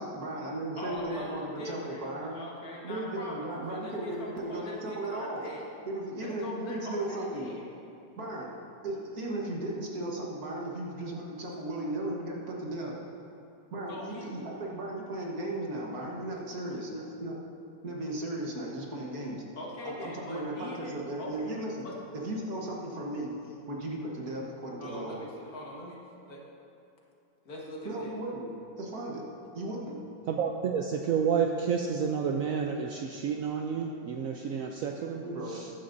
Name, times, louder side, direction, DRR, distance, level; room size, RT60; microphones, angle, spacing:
voice 1, 0.0-2.4 2.8-5.5 5.9-7.5 8.2-8.5 8.8-12.9 13.7-17.4 17.8-19.4 19.8-21.8 22.1-23.3 23.7-25.2 27.9-29.3 29.5-30.0 35.2-35.6, right 1 dB, 55° right, -2 dB, 1.7 m, -36 dB
voice 2, 0.8-2.0 2.3-5.6 6.2-7.7 13.9-14.3 19.6-20.9 21.2-21.6 21.8-22.0 24.8-26.0 26.2-26.4 27.5-28.2, left 1 dB, 50° left, -3 dB, 1.8 m, -41 dB
voice 3, 30.3-35.7, right 6 dB, 80° right, 3 dB, 0.7 m, -30 dB
14.5 x 10.0 x 2.6 m, 2.6 s
omnidirectional pair, 2.0 m